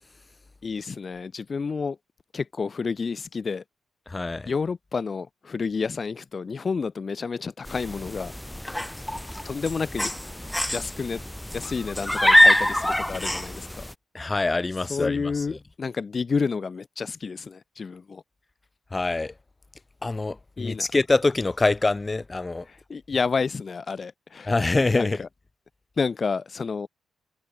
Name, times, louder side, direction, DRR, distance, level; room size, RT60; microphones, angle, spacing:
voice 1, 0.6-2.0 2.3-3.6 4.5-8.3 9.4-10.1 10.7-11.2 11.5-13.8 14.9-18.2 20.6-20.9 22.7-24.5 24.9-25.3 26.0-26.9, left 5 dB, 45° left, 0.9 m, -30 dB
voice 2, 4.1-4.5 14.1-15.4 18.9-19.3 20.0-22.7 24.5-25.2, left 3 dB, 25° left, 0.5 m, -25 dB
sound 1, 7.6-13.9, left 1 dB, 10° left, 0.9 m, -24 dB
cardioid pair, 70°, 0 cm